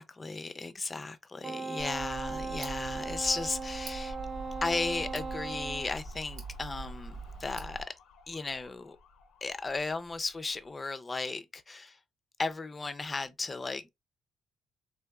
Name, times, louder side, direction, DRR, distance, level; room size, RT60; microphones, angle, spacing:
voice 1, 0.0-4.2 4.6-7.9 8.3-9.0 9.4-12.0 12.4-13.9, left 3 dB, 25° left, 0.4 m, -35 dB
Wind instrument woodwind instrument, 1.4-5.9, right 4 dB, 35° right, 0.5 m, -38 dB
Tick, 1.8-7.8, right 3 dB, 90° right, 1.0 m, -43 dB
sound 1, 1.9-10.9, left 5 dB, 80° left, 0.5 m, -55 dB
3.6 x 2.5 x 2.2 m
cardioid pair, 90°, 0 cm